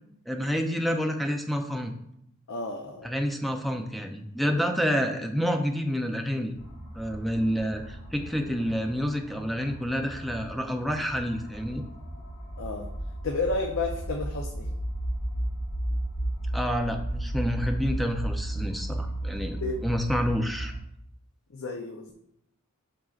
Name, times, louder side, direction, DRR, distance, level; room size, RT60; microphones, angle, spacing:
voice 1, 0.3-1.9 3.0-6.5 6.9-11.8 16.5-20.7, equal, ahead, 4 dB, 0.5 m, -28 dB
voice 2, 2.5-3.1 12.6-12.9 13.2-14.7 19.6-19.9 21.5-22.1, left 3 dB, 65° left, 3 dB, 0.6 m, -31 dB
sound 1, 6.6-20.8, right 1 dB, 90° left, 2.1 m, -34 dB
7.5 x 5.3 x 2.4 m, 0.76 s
head